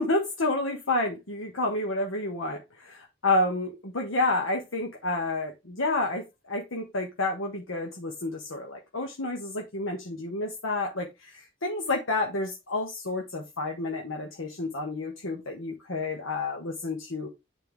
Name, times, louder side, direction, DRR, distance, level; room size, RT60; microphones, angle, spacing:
voice 1, 0.0-17.3, left 2 dB, 85° left, 1.4 m, -30 dB
9.1 x 4.4 x 3.4 m
head